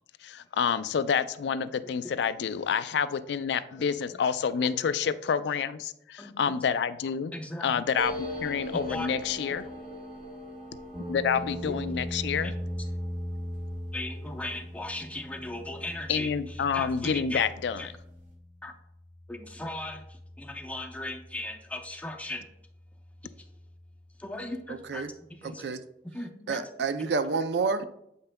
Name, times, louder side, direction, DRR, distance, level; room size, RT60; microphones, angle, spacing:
voice 1, 0.2-7.3 7.6-9.7 11.1-12.5 16.1-18.0, left 6 dB, 75° left, 14 dB, 0.3 m, -28 dB
voice 2, 7.3-7.8 8.7-9.1 11.7-11.8 13.9-16.3 16.7-17.4 17.8-17.9 18.6-18.7 19.3-20.0 20.4-22.5 24.2-25.0 25.4-25.6 26.1-26.7, left 1 dB, 10° left, 4 dB, 0.5 m, -37 dB
sound 1, 8.0-17.1 17.4-17.5 17.7-18.3, equal, 45° right, 1.6 m, -43 dB
sound 2, 10.9-25.0, equal, 30° right, 0.9 m, -41 dB
voice 3, 24.7-25.1 25.4-25.8 26.5-27.8, right 4 dB, 75° right, 11 dB, 0.4 m, -29 dB
7.8 x 5.4 x 2.2 m, 0.79 s
head